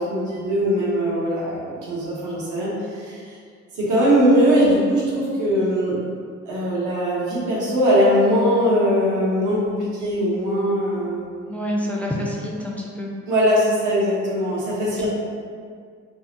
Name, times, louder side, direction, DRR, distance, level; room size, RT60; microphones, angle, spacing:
voice 1, 0.0-3.2 3.8-6.0 6.5-11.3 13.3-15.1, equal, 85° right, -6 dB, 1.0 m, -20 dB
voice 2, 11.5-13.1 15.0-15.1, equal, 5° left, -3 dB, 0.3 m, -27 dB
3.7 x 2.0 x 2.7 m, 2.1 s
cardioid pair, 90°, 30 cm